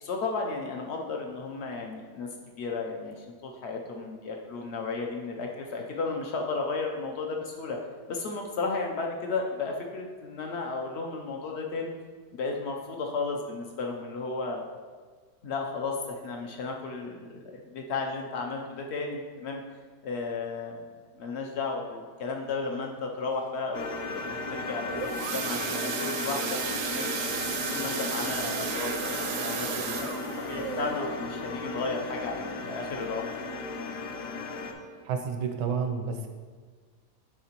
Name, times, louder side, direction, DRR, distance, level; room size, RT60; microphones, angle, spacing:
voice 1, 0.0-2.3 2.6-7.8 8.1-11.9 12.3-14.6 15.4-19.6 20.0-20.8 21.2-26.6 26.8-27.1 27.7-33.3, left 3 dB, 85° left, 1 dB, 0.5 m, -34 dB
sound 1, 23.7-34.7, left 3 dB, 65° left, 0.9 m, -36 dB
sound 2, 24.6-33.3 33.7-34.0 34.3-34.4 34.8-34.9, right 6 dB, 70° right, 0.8 m, -34 dB
voice 2, 35.1-36.3, right 6 dB, 85° right, 5 dB, 1.3 m, -30 dB
10.5 x 3.6 x 2.9 m, 1.6 s
omnidirectional pair, 1.8 m